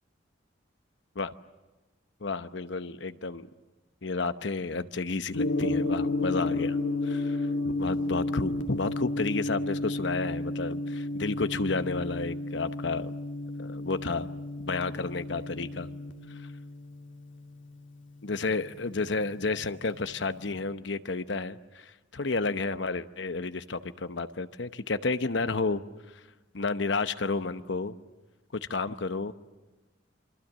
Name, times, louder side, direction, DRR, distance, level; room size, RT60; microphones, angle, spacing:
voice 1, 2.2-3.5 4.0-6.8 7.0-13.1 13.6-14.4 14.6-15.9 16.3-16.5 18.2-26.2 26.5-28.0 28.5-29.3, left 3 dB, 70° left, 12 dB, 0.9 m, -31 dB
Gong, 5.3-19.5, left 2 dB, 85° left, 2.0 m, -32 dB
27.0 x 24.5 x 7.5 m, 1.2 s
head